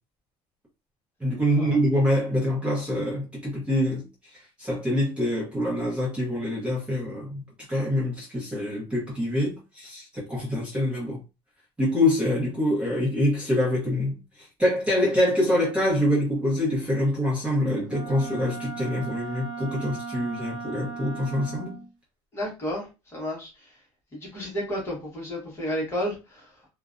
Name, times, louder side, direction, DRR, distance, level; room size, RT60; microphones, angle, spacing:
voice 1, 1.2-4.0 4.6-7.4 7.7-11.2 11.8-21.8, left 1 dB, 10° right, 0.8 m, -25 dB
Wind instrument woodwind instrument, 17.9-21.9, right 4 dB, 35° right, 0.8 m, -37 dB
voice 2, 22.3-23.8 24.1-26.7, equal, 20° left, 1.0 m, -32 dB
2.5 x 2.1 x 2.4 m
cardioid pair, 165°, 12 cm